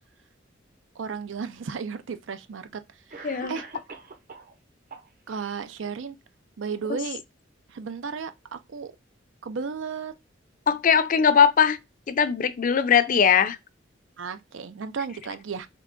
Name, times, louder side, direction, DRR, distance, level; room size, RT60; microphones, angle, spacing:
voice 1, 1.0-2.8 3.1-3.7 5.3-6.2 6.6-7.2 7.7-8.9 9.4-10.1 14.2-15.7, right 5 dB, 85° right, 0.5 m, -34 dB
Cough, 2.5-2.6 3.1-4.5 4.9-5.5, right 4 dB, 50° right, 0.8 m, -43 dB
voice 2, 3.2-3.6 6.9-7.0 10.7-11.8 12.1-13.6, left 7 dB, 45° left, 0.4 m, -20 dB
3.7 x 3.2 x 3.7 m
head